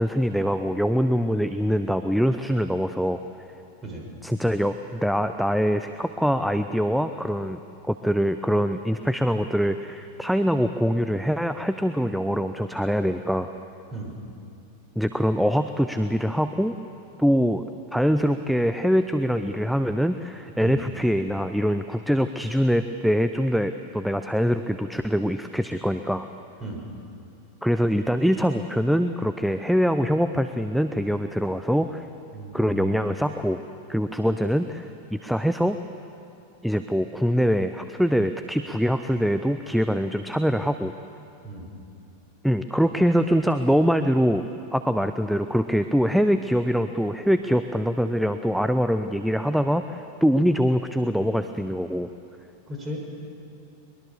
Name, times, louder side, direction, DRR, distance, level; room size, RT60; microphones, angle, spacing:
voice 1, 0.0-3.2 4.2-7.6 7.9-13.5 15.0-16.8 17.2-17.6 17.9-26.3 27.6-32.1 32.5-33.6 33.9-35.8 36.6-40.9 42.4-44.5 44.7-52.1, equal, ahead, 9 dB, 0.7 m, -23 dB
voice 2, 32.3-32.9 41.4-41.7 52.7-53.0, right 1 dB, 20° right, 0 dB, 6.0 m, -35 dB
22.5 x 21.5 x 7.0 m, 2.7 s
figure-of-eight pair, 90°, 0 cm